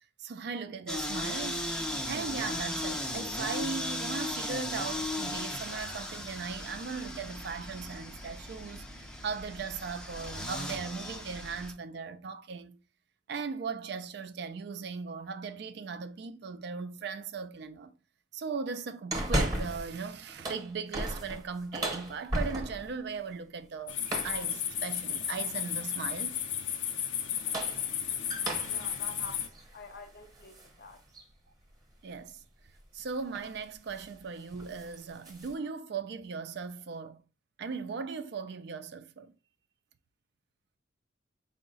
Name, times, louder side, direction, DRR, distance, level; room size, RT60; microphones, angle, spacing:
voice 1, 0.2-1.7 2.1-8.9 9.2-12.8 13.3-17.9 18.3-24.0 24.2-26.4 32.0-32.4 32.9-37.2 37.6-39.3, right 5 dB, 60° right, 0.4 m, -38 dB
sound 1, 0.9-11.7, left 1 dB, 5° left, 0.4 m, -37 dB
sound 2, 19.1-19.9 20.3-23.0 24.1-24.5 25.5-26.0 27.2-30.7 31.1-31.2 32.8-33.0 33.3-33.6 33.9-34.2 34.5-35.5, right 1 dB, 20° right, 0.9 m, -35 dB
sound 3, 23.9-29.5, left 9 dB, 85° left, 0.6 m, -33 dB
voice 2, 28.6-31.0, left 4 dB, 55° left, 0.7 m, -48 dB
4.6 x 2.1 x 3.8 m
head